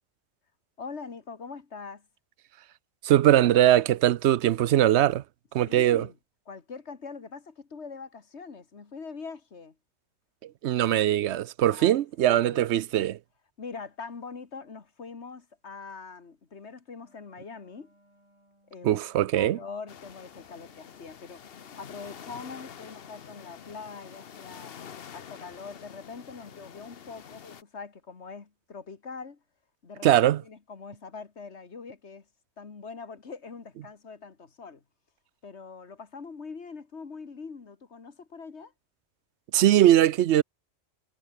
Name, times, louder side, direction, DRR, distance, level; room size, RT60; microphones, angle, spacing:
voice 1, 0.8-2.1 5.6-6.2 6.5-9.8 11.7-12.0 12.3-12.6 13.0-13.1 13.6-17.9 18.7-19.0 19.3-29.4 29.8-32.3 32.6-34.8 35.4-38.7, left 5 dB, 80° left, 2.2 m, -43 dB
voice 2, 3.0-5.2 5.5-6.1 10.4-13.2 18.8-19.6 30.0-30.4 39.5-40.4, right 12 dB, 80° right, 0.9 m, -21 dB
Wind instrument woodwind instrument, 17.0-23.6, right 1 dB, 25° right, 6.3 m, -65 dB
sound 1, 19.9-27.6, left 8 dB, 60° left, 1.1 m, -47 dB
omnidirectional pair, 1.1 m